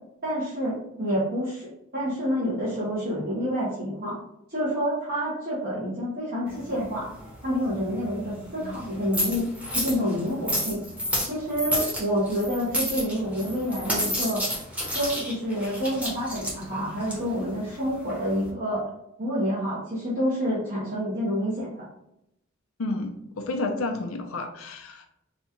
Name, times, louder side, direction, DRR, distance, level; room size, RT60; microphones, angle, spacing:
voice 1, 0.2-4.1 4.5-7.1 7.4-9.4 9.7-10.8 11.2-14.4 14.9-18.8 19.2-21.9, equal, 45° right, -9 dB, 1.0 m, -28 dB
sound 1, 6.5-18.5, equal, 5° right, 1.0 m, -32 dB
voice 2, 22.8-25.1, left 2 dB, 75° left, 4 dB, 0.6 m, -31 dB
4.0 x 2.3 x 2.8 m, 0.80 s
head